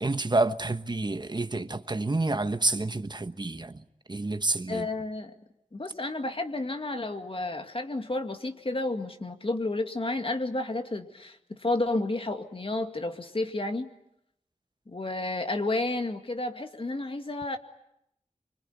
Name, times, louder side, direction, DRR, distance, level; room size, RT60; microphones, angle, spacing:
voice 1, 0.0-3.8 4.1-4.9, right 2 dB, 35° right, 1.2 m, -28 dB
voice 2, 4.7-5.3 5.7-13.9 14.9-17.6, left 2 dB, 45° left, 2.2 m, -31 dB
25.0 x 24.5 x 9.7 m
wide cardioid pair, 70°, 13 cm